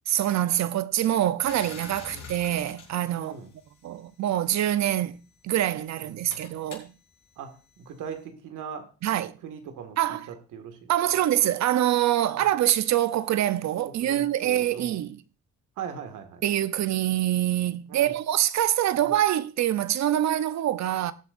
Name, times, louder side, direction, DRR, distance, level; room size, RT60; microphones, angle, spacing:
voice 1, 0.1-3.3 3.8-6.9 9.0-9.4 10.0-10.3 10.9-15.2 16.4-21.1, right 12 dB, 65° right, 0.7 m, -25 dB
sound 1, 1.4-4.1 5.0-8.2, left 5 dB, 65° left, 3.8 m, -47 dB
voice 2, 3.2-3.5 6.0-6.5 7.4-8.9 9.4-11.2 12.2-12.4 13.8-15.0 15.8-16.4 17.9-18.2 19.0-19.1, right 7 dB, 85° right, 1.9 m, -40 dB
19.0 x 7.9 x 2.6 m
cardioid pair, 90°, 30 cm